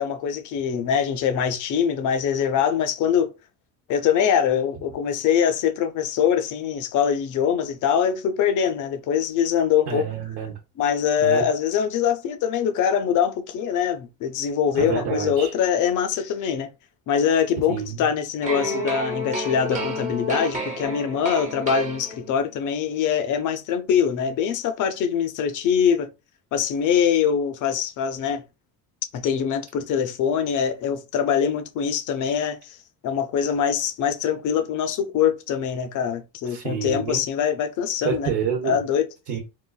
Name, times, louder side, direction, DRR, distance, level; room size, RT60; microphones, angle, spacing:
voice 1, 0.0-3.3 3.9-10.1 10.8-16.7 17.1-26.1 26.5-28.4 29.1-32.8 33.0-38.3 38.6-39.1, left 8 dB, 55° left, 0.6 m, -23 dB
voice 2, 9.9-10.6 11.2-11.4 14.7-15.5 17.7-18.0 36.5-37.2 38.0-38.8 39.3-39.4, right 7 dB, 80° right, 1.0 m, -28 dB
sound 1, 18.4-22.5, left 1 dB, 20° right, 0.8 m, -30 dB
3.8 x 2.4 x 2.3 m
cardioid pair, 150°, 38 cm